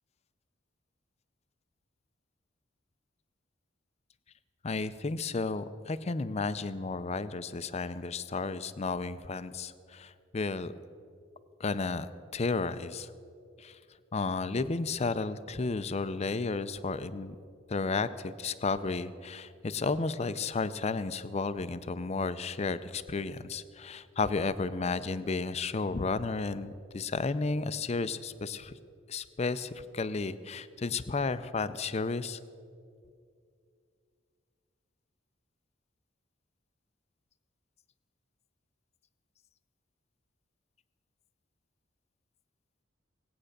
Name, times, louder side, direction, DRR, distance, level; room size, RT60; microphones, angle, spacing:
voice 1, 4.6-10.7 11.6-13.1 13.6-13.8 14.1-17.4 17.7-28.7 29.1-32.4, left 4 dB, 35° left, 14 dB, 0.5 m, -33 dB
18.5 x 8.7 x 6.6 m, 2.3 s
head